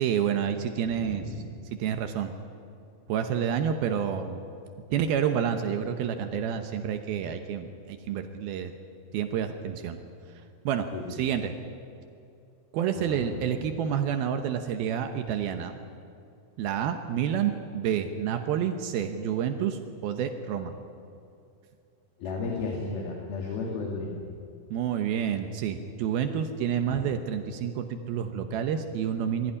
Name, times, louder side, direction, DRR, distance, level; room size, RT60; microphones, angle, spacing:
voice 1, 0.0-1.2 1.8-2.3 3.1-4.4 4.9-8.7 9.1-10.0 10.6-11.5 12.7-15.7 16.6-20.7 24.7-29.5, right 8 dB, 75° right, 7 dB, 2.8 m, -29 dB
voice 2, 0.9-1.4 10.9-11.3 13.0-13.2 22.2-24.3 26.9-27.0, left 3 dB, 75° left, 0 dB, 4.0 m, -34 dB
21.5 x 16.0 x 10.0 m, 2.5 s
omnidirectional pair, 4.5 m